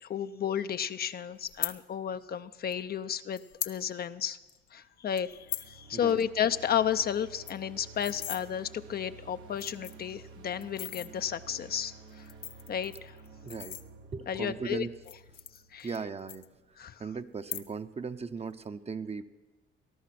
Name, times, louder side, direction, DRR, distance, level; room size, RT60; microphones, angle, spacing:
voice 1, 0.0-4.4 4.7-12.3 12.7-13.2 14.3-14.9 15.7-15.9 16.8-17.0, left 8 dB, 50° left, 11 dB, 0.6 m, -32 dB
sound 1, 1.5-1.8 2.7-2.8 3.3-3.8 4.1-4.2 4.5-4.7 5.2-5.7 6.1-6.2 6.5-6.6 6.9-7.0 7.3-8.4 9.1-9.2 9.5-10.1 10.6-11.1 12.1-14.3 14.9-16.0 16.3-16.9 17.3-17.9 18.2-18.6, left 13 dB, 85° left, 0.7 m, -39 dB
sound 2, 5.2-16.2, right 4 dB, 80° right, 1.4 m, -52 dB
voice 2, 5.9-6.2 13.4-13.8 14.1-14.9 15.8-16.4 17.0-19.2, right 5 dB, 30° right, 10 dB, 0.8 m, -37 dB
19.0 x 12.0 x 6.0 m, 1.1 s
cardioid pair, 90°, 20 cm